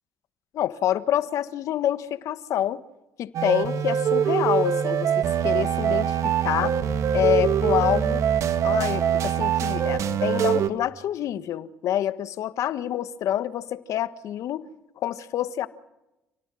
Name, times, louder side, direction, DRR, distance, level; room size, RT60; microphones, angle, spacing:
voice 1, 0.5-2.8 3.2-6.8 7.1-8.2 8.6-14.7 15.0-15.7, left 11 dB, 70° left, 13 dB, 1.4 m, -27 dB
sound 1, 3.3-10.7, right 8 dB, 65° right, 1.8 m, -23 dB
29.0 x 18.0 x 7.6 m, 0.95 s
supercardioid pair, 70°, 6 cm